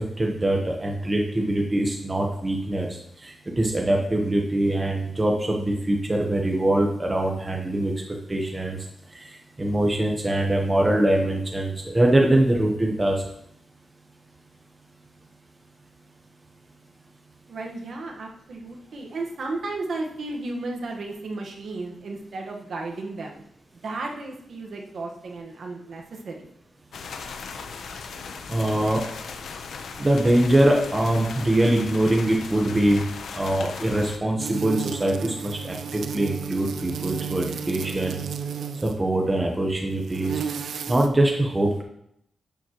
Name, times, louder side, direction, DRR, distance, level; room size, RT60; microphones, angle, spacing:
voice 1, 0.2-7.9 8.3-8.8 9.1-13.2 28.5-29.0 30.0-33.0 33.3-38.2 38.8-40.4 40.9-41.8, right 1 dB, 15° right, 0 dB, 1.0 m, -23 dB
voice 2, 17.5-23.4 23.8-26.5, right 2 dB, 55° right, 1 dB, 1.3 m, -34 dB
sound 1, 26.9-34.2, left 5 dB, 70° left, 0.8 m, -38 dB
sound 2, 34.4-39.0 39.9-41.1, right 7 dB, 75° right, 0.5 m, -33 dB
11.0 x 7.1 x 3.0 m, 0.73 s
wide cardioid pair, 175°, 0 cm